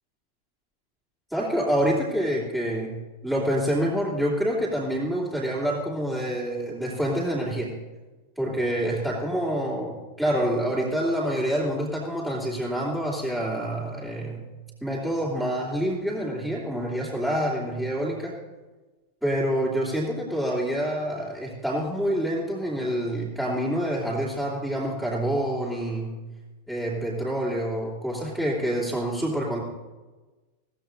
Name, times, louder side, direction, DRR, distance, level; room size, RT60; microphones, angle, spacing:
voice 1, 1.3-3.0 3.2-7.7 8.4-14.4 14.8-18.3 19.2-26.2 26.7-29.6, equal, 5° right, -8 dB, 2.9 m, -27 dB
17.5 x 14.5 x 2.6 m, 1.2 s
figure-of-eight pair, 90°, 0 cm